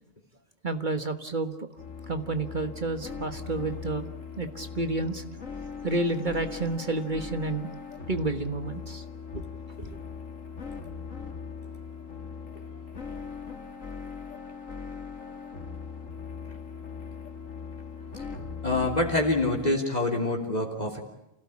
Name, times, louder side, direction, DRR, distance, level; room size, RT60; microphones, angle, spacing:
voice 1, 0.6-1.7 2.1-4.1 4.4-5.2 5.8-7.7 8.1-9.0 9.3-9.5, right 2 dB, 40° right, 8 dB, 1.5 m, -30 dB
sound 1, 1.8-19.7, left 6 dB, 75° left, 2.5 m, -40 dB
voice 2, 18.6-21.0, left 2 dB, 30° left, 2 dB, 3.4 m, -26 dB
29.0 x 17.0 x 8.5 m, 0.90 s
omnidirectional pair, 1.4 m